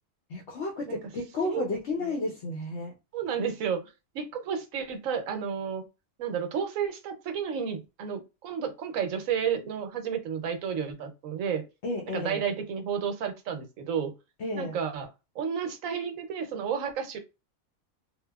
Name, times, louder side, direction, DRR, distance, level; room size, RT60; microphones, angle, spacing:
voice 1, 0.3-2.9 11.8-12.4 14.4-14.8, left 2 dB, 60° left, 0.8 m, -32 dB
voice 2, 3.1-5.8 6.2-11.7 12.1-14.1 14.5-15.1 15.3-17.2, right 7 dB, 75° right, 1.0 m, -31 dB
2.9 x 2.1 x 2.2 m
omnidirectional pair, 1.4 m